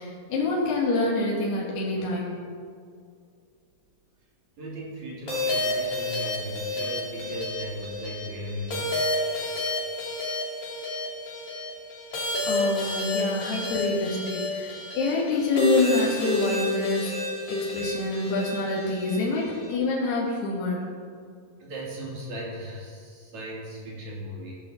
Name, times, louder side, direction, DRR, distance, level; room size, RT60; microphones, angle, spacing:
voice 1, 0.0-2.4 12.4-17.1 17.5-20.8, left 2 dB, 75° left, -4 dB, 4.3 m, -26 dB
voice 2, 4.6-9.1 21.6-24.6, equal, 45° right, -4 dB, 4.2 m, -37 dB
sound 1, 5.3-19.7, left 2 dB, 40° left, 3.1 m, -30 dB
17.5 x 7.5 x 7.4 m, 2.2 s
omnidirectional pair, 4.9 m